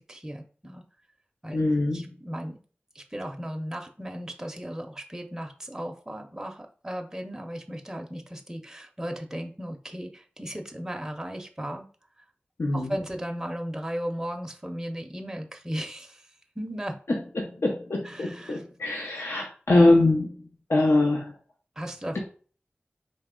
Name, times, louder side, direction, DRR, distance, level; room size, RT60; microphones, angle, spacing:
voice 1, 0.1-0.8 1.4-1.7 1.9-2.6 2.9-11.9 12.7-16.3 16.6-17.0 18.0-18.6 21.8-22.2, equal, 15° right, 4 dB, 0.6 m, -36 dB
voice 2, 1.5-2.1 12.6-13.0 17.1-20.4 20.7-21.3, left 2 dB, 85° left, 0 dB, 0.7 m, -23 dB
4.1 x 3.1 x 3.6 m, 0.41 s
wide cardioid pair, 70°, 4 cm